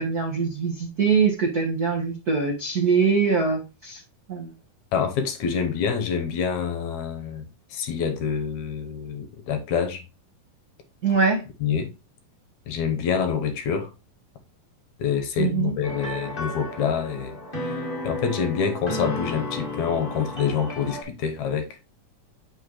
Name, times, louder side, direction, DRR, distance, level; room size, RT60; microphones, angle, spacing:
voice 1, 0.0-4.0 4.3-4.5 11.0-11.4 15.4-15.7, right 5 dB, 80° right, 0.8 m, -23 dB
voice 2, 4.9-7.5 7.7-10.0 11.6-11.9 12.7-13.9 15.0-17.4 17.6-21.7, left 7 dB, 70° left, 2.1 m, -26 dB
sound 1, 15.8-21.0, left 1 dB, 20° left, 1.4 m, -33 dB
8.6 x 5.4 x 3.1 m
omnidirectional pair, 3.9 m